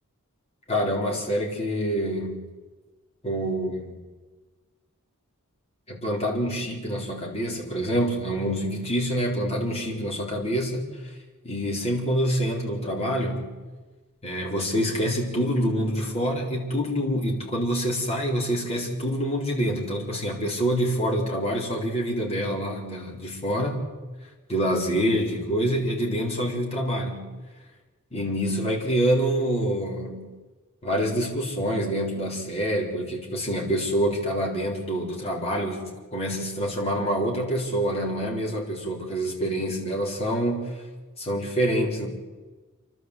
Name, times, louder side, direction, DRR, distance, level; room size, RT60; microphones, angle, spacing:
voice 1, 0.7-2.5 3.2-4.0 5.9-10.9 11.4-13.5 14.2-23.8 24.5-27.3 28.1-30.3 30.8-40.7 41.2-42.1, equal, 30° left, -1 dB, 4.2 m, -26 dB
29.0 x 12.0 x 8.1 m, 1.3 s
head